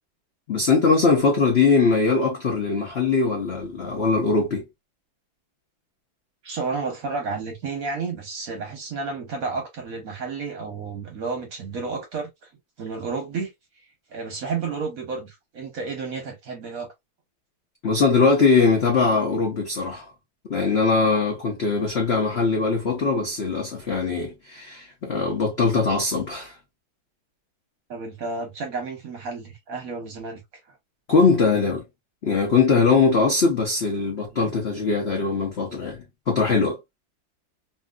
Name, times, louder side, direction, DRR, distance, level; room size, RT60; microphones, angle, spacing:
voice 1, 0.5-4.6 17.8-20.1 20.5-26.6 31.1-31.8 32.2-36.8, left 4 dB, 80° left, 0.5 m, -21 dB
voice 2, 6.4-12.5 12.8-13.5 14.1-16.9 27.9-30.4 34.3-34.5, right 4 dB, 55° right, 1.0 m, -31 dB
2.9 x 2.7 x 2.3 m
omnidirectional pair, 2.2 m